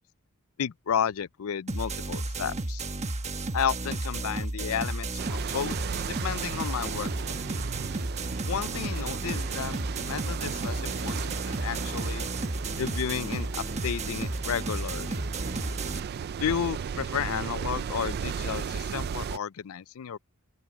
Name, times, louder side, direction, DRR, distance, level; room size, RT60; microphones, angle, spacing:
voice 1, 0.6-2.8 3.5-5.8 6.1-7.4 8.5-12.3 12.8-15.2 16.4-20.2, left 8 dB, 65° left, 0.4 m, -32 dB
sound 1, 1.7-16.0, right 2 dB, 30° right, 1.2 m, -33 dB
sound 2, 5.2-19.4, right 7 dB, 45° right, 0.3 m, -36 dB
open air
head